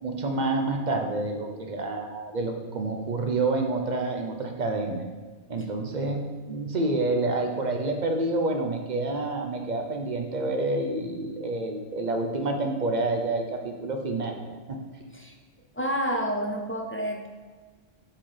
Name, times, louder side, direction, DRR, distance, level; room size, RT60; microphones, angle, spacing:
voice 1, 0.0-5.0 5.5-14.8, right 2 dB, 45° right, 3 dB, 0.8 m, -28 dB
voice 2, 15.7-17.3, equal, 15° left, 1 dB, 0.5 m, -29 dB
5.7 x 4.5 x 4.9 m, 1.4 s
omnidirectional pair, 1.1 m